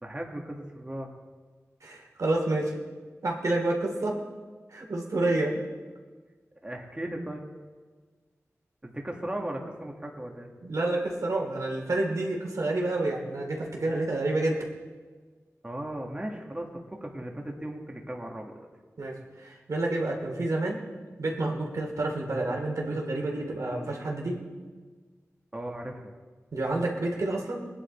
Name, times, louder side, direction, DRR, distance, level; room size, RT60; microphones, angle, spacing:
voice 1, 0.0-1.1 6.6-7.4 8.8-10.5 15.6-16.7 17.0-18.5 25.5-26.0, right 1 dB, 20° right, 0 dB, 1.7 m, -36 dB
voice 2, 1.8-2.7 3.2-4.2 4.7-5.6 10.6-14.6 19.0-20.8 21.2-24.4 26.5-27.6, right 2 dB, 75° right, 0 dB, 2.7 m, -29 dB
21.0 x 10.0 x 4.4 m, 1.4 s
wide cardioid pair, 100°, 6 cm